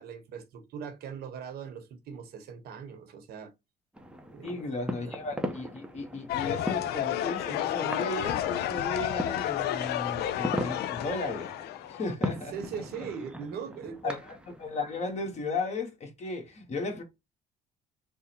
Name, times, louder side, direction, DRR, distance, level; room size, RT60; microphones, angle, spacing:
voice 1, 0.0-3.5 4.3-4.7 12.5-14.1, right 7 dB, 70° right, 0.9 m, -40 dB
sound 1, 3.9-15.4, equal, 5° right, 0.5 m, -39 dB
voice 2, 4.4-12.5 14.0-17.0, left 3 dB, 40° left, 1.2 m, -35 dB
sound 2, 6.3-12.1, left 12 dB, 75° left, 0.4 m, -31 dB
3.5 x 2.0 x 4.3 m
cardioid pair, 110°, 17 cm